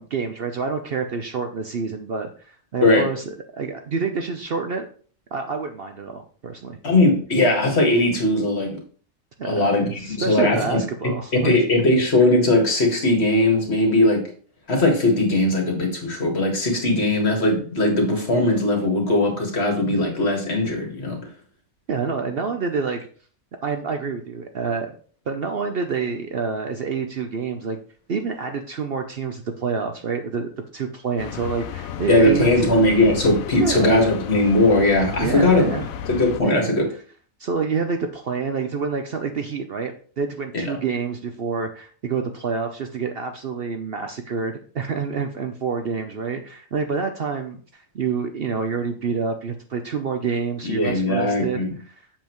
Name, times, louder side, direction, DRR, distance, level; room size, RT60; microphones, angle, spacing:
voice 1, 0.0-3.2 3.5-4.9 5.3-6.8 9.4-11.6 21.9-23.1 23.6-25.0 25.3-27.8 28.1-32.7 33.6-34.0 35.2-35.9 36.4-36.7 37.4-51.9, right 5 dB, 55° right, 6 dB, 0.8 m, -27 dB
voice 2, 6.8-8.8 9.4-10.8 11.3-14.2 14.7-21.2 32.1-36.9 40.5-40.6 50.6-51.7, left 2 dB, 50° left, 2 dB, 2.1 m, -19 dB
sound 1, 31.2-36.4, left 10 dB, 85° left, 1.1 m, -33 dB
7.5 x 7.2 x 3.0 m, 0.43 s
omnidirectional pair, 1.4 m